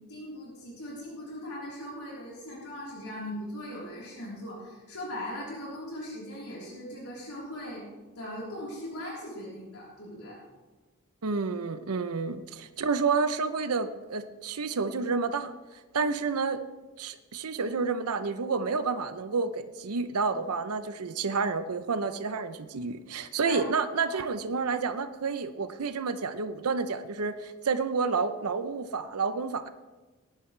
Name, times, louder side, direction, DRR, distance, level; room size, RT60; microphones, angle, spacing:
voice 1, 0.1-7.9 8.2-10.4 16.0-16.1 23.4-23.7, left 1 dB, 90° left, -5 dB, 3.7 m, -39 dB
voice 2, 11.2-15.5 15.9-16.6 17.0-29.7, right 4 dB, 90° right, 10 dB, 0.7 m, -30 dB
19.5 x 10.5 x 3.2 m, 1.2 s
head